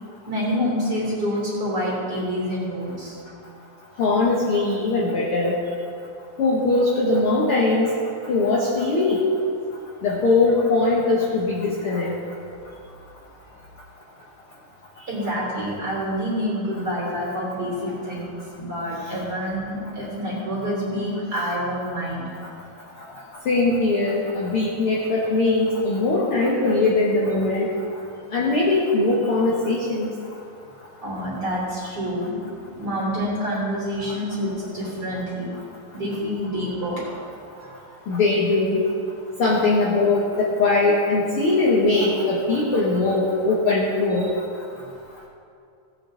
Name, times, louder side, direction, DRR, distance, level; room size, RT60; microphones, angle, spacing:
voice 1, 0.3-3.2 12.6-12.7 15.1-22.2 23.1-23.2 31.0-32.4 32.6-35.5 35.9-38.0, equal, 30° right, -5 dB, 3.6 m, -27 dB
voice 2, 4.0-5.6 6.4-7.9 8.3-9.2 10.0-12.1 23.4-27.7 28.3-30.1 34.0-34.1 38.1-38.8 39.4-44.3, left 3 dB, 60° left, -4 dB, 1.5 m, -21 dB
17.0 x 8.5 x 3.8 m, 2.4 s
omnidirectional pair, 3.9 m